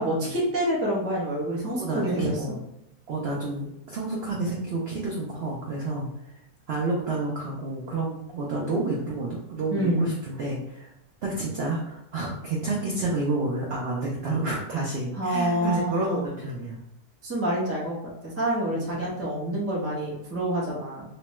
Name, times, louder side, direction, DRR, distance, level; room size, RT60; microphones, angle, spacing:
voice 1, 0.0-2.3 9.7-10.1 15.2-16.2 17.2-18.0 18.4-21.0, right 1 dB, 20° right, -5 dB, 0.4 m, -27 dB
voice 2, 1.8-2.6 3.1-6.4 6.7-10.9 11.2-16.8 18.7-19.2, right 2 dB, 70° right, -3 dB, 0.6 m, -30 dB
3.0 x 2.1 x 2.9 m, 0.81 s
omnidirectional pair, 1.7 m